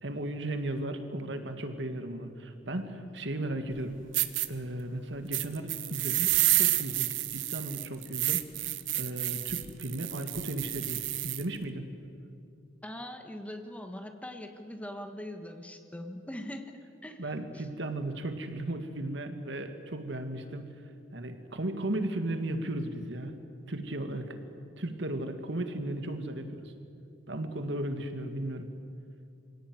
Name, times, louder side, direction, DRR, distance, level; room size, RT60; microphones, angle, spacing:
voice 1, 0.0-4.0 4.5-8.4 8.9-11.8 17.2-20.7 21.1-23.3 23.7-24.4 24.8-26.7 27.3-28.7, right 1 dB, 65° right, 7 dB, 2.0 m, -35 dB
sound 1, 3.7-3.8 4.1-4.5 5.3-11.4, right 15 dB, 80° right, 1.1 m, -29 dB
voice 2, 12.8-16.7 17.0-17.7, left 1 dB, 5° left, 6 dB, 1.5 m, -42 dB
25.5 x 17.0 x 9.5 m, 2.5 s
head